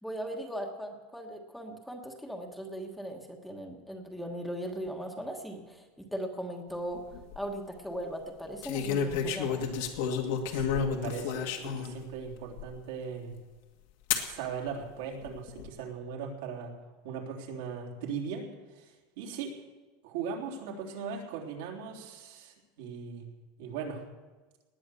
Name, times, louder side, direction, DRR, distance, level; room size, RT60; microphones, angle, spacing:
voice 1, 0.0-5.8 6.1-7.0 7.3-9.7, equal, ahead, 2 dB, 1.3 m, -38 dB
sound 1, 6.9-7.4 8.6-12.0 12.6-12.7 14.1-14.3 15.2-15.7, left 7 dB, 70° left, 2.0 m, -31 dB
voice 2, 10.5-13.4 14.2-16.7 17.0-18.4 18.7-18.9 19.2-19.5 20.0-23.3 23.6-24.0, right 6 dB, 75° right, 0 dB, 3.4 m, -39 dB
19.0 x 9.6 x 7.0 m, 1.3 s
supercardioid pair, 160°, 0 cm